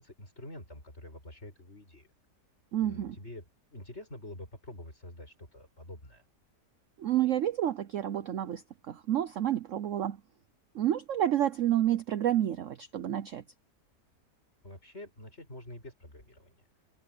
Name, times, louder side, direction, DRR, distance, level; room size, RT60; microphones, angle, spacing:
voice 1, 0.0-2.1 2.8-6.2 14.6-16.6, left 1 dB, 40° left, 8.0 m, -47 dB
voice 2, 2.7-3.1 7.0-8.6 8.9-10.2 10.7-13.4, right 11 dB, 60° right, 0.9 m, -29 dB
omnidirectional pair, 1.8 m